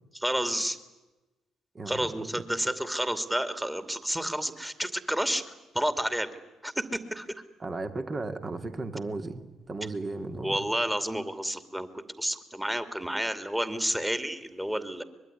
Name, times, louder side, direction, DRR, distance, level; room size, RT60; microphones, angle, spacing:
voice 1, 0.1-0.8 1.9-5.4 5.7-6.3 6.6-7.3 10.4-15.0, equal, 5° right, 10 dB, 2.7 m, -30 dB
voice 2, 1.7-2.1 7.6-9.4 9.7-10.6, right 3 dB, 35° right, 8 dB, 2.4 m, -35 dB
24.0 x 21.5 x 9.9 m, 1.1 s
figure-of-eight pair, 45°, 0 cm